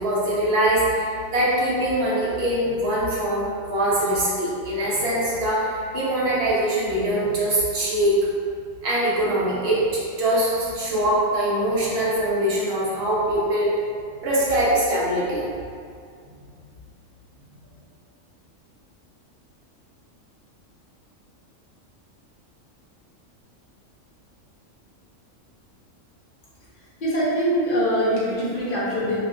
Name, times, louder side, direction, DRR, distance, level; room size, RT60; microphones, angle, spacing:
voice 1, 0.0-8.1 8.8-13.7 14.2-15.4, right 1 dB, 60° right, -8 dB, 0.8 m, -23 dB
voice 2, 26.7-29.2, equal, 55° left, -8 dB, 0.6 m, -23 dB
2.8 x 2.0 x 2.4 m, 2.3 s
omnidirectional pair, 1.4 m